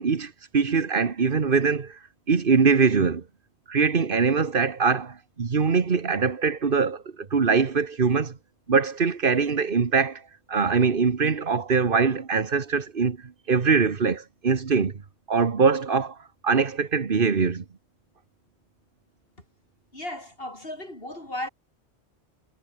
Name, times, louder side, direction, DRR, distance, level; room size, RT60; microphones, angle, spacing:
voice 1, 0.0-2.0 2.3-3.2 3.7-8.4 8.7-10.2 10.5-15.0 15.3-16.2 16.4-17.6, right 5 dB, 55° right, 1.5 m, -23 dB
voice 2, 19.9-21.5, left 1 dB, 60° left, 6.4 m, -35 dB
omnidirectional pair, 1.1 m